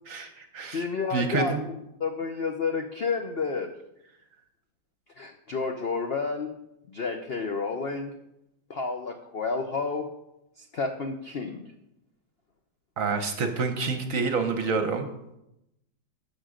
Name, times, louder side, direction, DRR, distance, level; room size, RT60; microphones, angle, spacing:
voice 1, 0.1-0.8 1.1-1.6 13.0-15.1, right 4 dB, 55° right, 7 dB, 1.1 m, -28 dB
voice 2, 0.7-1.5 2.0-3.7 5.2-6.5 6.9-8.1 8.7-10.1 10.6-11.6, left 4 dB, 75° left, 5 dB, 0.5 m, -30 dB
12.5 x 6.2 x 5.0 m, 0.87 s
omnidirectional pair, 2.1 m